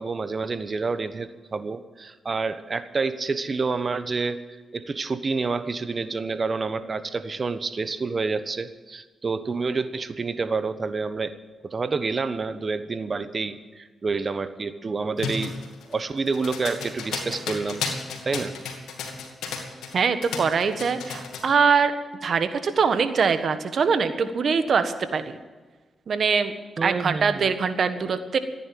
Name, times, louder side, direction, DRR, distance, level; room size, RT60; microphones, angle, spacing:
voice 1, 0.0-4.4 4.7-11.3 11.6-15.6 15.9-17.9 18.2-18.5 26.8-27.6, right 4 dB, 45° right, 12 dB, 1.2 m, -28 dB
sound 1, 15.2-20.0 20.2-21.5, left 5 dB, 90° left, 2.4 m, -33 dB
voice 2, 19.9-21.9 22.2-25.4 26.1-26.5 26.8-28.4, right 5 dB, 65° right, 10 dB, 1.4 m, -23 dB
15.0 x 10.0 x 9.3 m, 1.3 s
cardioid pair, 60°, 0 cm